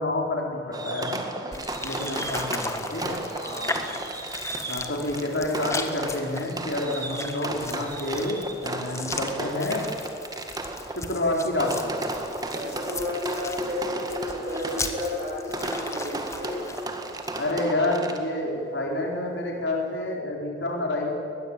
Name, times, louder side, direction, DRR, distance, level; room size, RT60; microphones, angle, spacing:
voice 1, 0.0-1.2 1.8-3.2 4.7-9.8 10.9-11.9 17.4-21.1, left 1 dB, 75° left, 0 dB, 4.5 m, -28 dB
Fireworks, 0.7-18.5, right 2 dB, 20° right, 1.9 m, -34 dB
sound 1, 1.5-17.5, left 3 dB, 15° left, 1.5 m, -37 dB
voice 2, 3.4-3.9 6.8-6.9 12.5-16.6, left 1 dB, 45° right, -6 dB, 6.3 m, -32 dB
22.5 x 20.5 x 8.9 m, 2.5 s
head